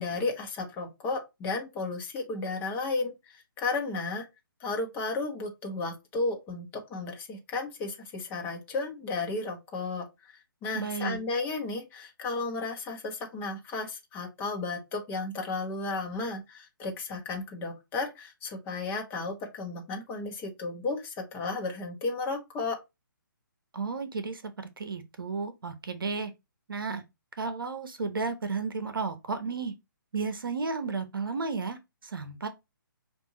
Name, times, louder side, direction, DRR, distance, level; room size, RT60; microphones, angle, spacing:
voice 1, 0.0-4.3 4.6-22.8, left 3 dB, 15° left, 1.0 m, -33 dB
voice 2, 10.7-11.2 23.7-26.3 26.7-27.0 27.4-29.7 30.1-32.5, right 4 dB, 75° right, 0.8 m, -33 dB
5.3 x 2.6 x 2.9 m
figure-of-eight pair, 140°, 12 cm